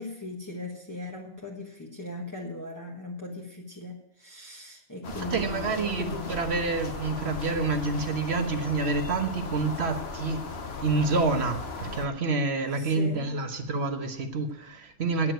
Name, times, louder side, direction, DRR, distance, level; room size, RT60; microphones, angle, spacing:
voice 1, 0.0-6.4 12.7-13.3, left 2 dB, 15° left, -2 dB, 1.3 m, -38 dB
sound 1, 5.0-12.1, left 4 dB, 50° left, 1.3 m, -37 dB
voice 2, 5.3-10.4 10.8-15.3, right 3 dB, 55° right, 6 dB, 1.4 m, -28 dB
9.7 x 7.9 x 9.1 m, 0.80 s
omnidirectional pair, 1.4 m